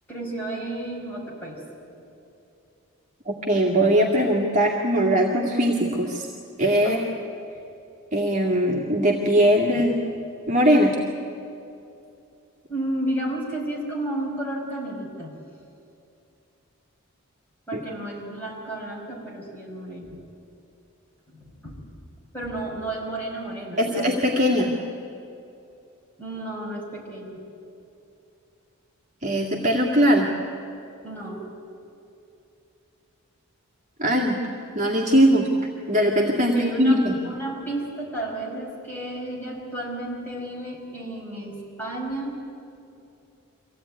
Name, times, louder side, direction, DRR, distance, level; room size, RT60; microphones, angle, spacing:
voice 1, 0.1-1.6 6.8-7.0 9.7-9.8 12.7-15.4 17.7-20.2 21.3-21.9 22.3-24.2 26.2-27.4 31.0-31.4 36.4-42.4, right 1 dB, 10° left, -4 dB, 5.4 m, -32 dB
voice 2, 3.3-6.3 6.6-7.0 8.1-10.0 10.5-11.0 17.7-17.8 23.8-24.7 29.2-30.3 34.0-34.4 34.7-35.5 35.9-37.1, equal, 35° right, -2 dB, 2.1 m, -20 dB
24.0 x 16.5 x 9.6 m, 2.6 s
head